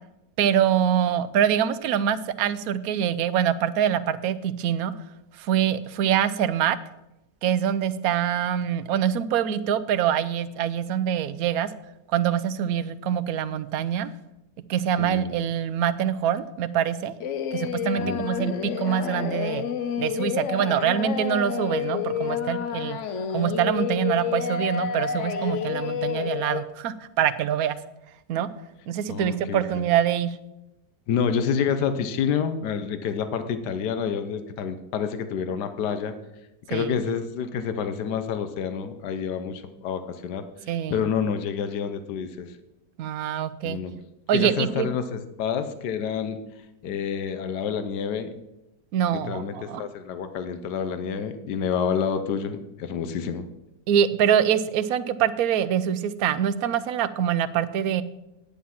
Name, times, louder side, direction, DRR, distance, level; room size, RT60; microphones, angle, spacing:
voice 1, 0.4-4.9 5.4-6.8 7.4-11.7 12.1-14.1 14.7-17.1 17.5-19.7 20.0-23.0 23.3-27.8 28.3-28.5 28.9-30.4 36.7-37.0 40.7-41.0 43.0-43.8 44.3-44.9 48.9-49.8 53.9-58.0, right 9 dB, 65° right, 14 dB, 1.1 m, -24 dB
voice 2, 15.0-15.3 18.0-18.2 29.1-29.8 31.1-36.1 36.7-40.5 40.9-42.5 43.6-43.9 44.3-46.4 46.8-48.3 49.1-53.4, left 7 dB, 85° left, 10 dB, 1.4 m, -28 dB
Singing, 17.2-26.6, left 8 dB, 60° left, 0.9 m, -29 dB
9.8 x 8.7 x 5.8 m, 0.92 s
omnidirectional pair, 1.7 m